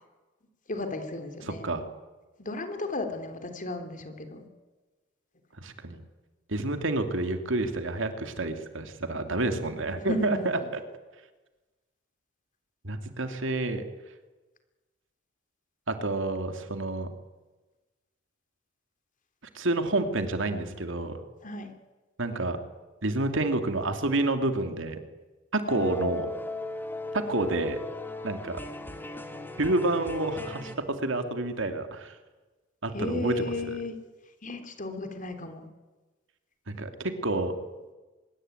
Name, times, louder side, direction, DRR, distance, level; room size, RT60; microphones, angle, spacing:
voice 1, 0.7-1.7 2.4-4.5 10.1-10.5 21.4-21.7 25.7-26.1 32.9-34.0 34.4-35.7, left 2 dB, 40° left, 7 dB, 3.5 m, -34 dB
voice 2, 1.4-1.8 5.6-6.0 6.5-10.6 12.8-13.8 15.9-17.1 19.5-21.2 22.2-22.6 23.0-25.0 25.5-26.3 27.3-27.8 28.2-28.6 29.6-32.1 32.8-33.8 36.7-37.5, right 2 dB, 65° right, 7 dB, 2.8 m, -29 dB
sound 1, 25.7-30.8, left 2 dB, 10° left, 2.5 m, -38 dB
24.5 x 22.0 x 9.2 m, 1.2 s
head